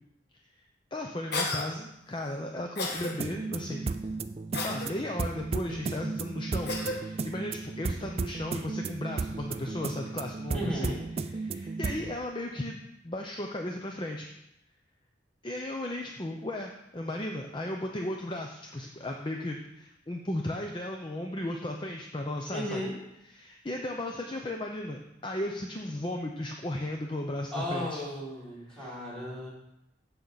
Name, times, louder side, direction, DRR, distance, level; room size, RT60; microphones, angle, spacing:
voice 1, 0.9-3.9 4.6-14.3 15.4-22.8 23.2-28.0 28.7-28.9, left 1 dB, 25° left, 2 dB, 0.6 m, -35 dB
Cough, 1.3-1.6 2.8-3.1 4.5-4.9 6.7-7.0, left 2 dB, 55° left, 1.5 m, -32 dB
sound 1, 3.0-12.2, right 3 dB, 30° right, 0.4 m, -34 dB
voice 2, 10.5-11.0 22.5-23.0 27.5-29.5, equal, 5° left, -7 dB, 3.4 m, -35 dB
15.0 x 6.0 x 4.0 m, 0.86 s
head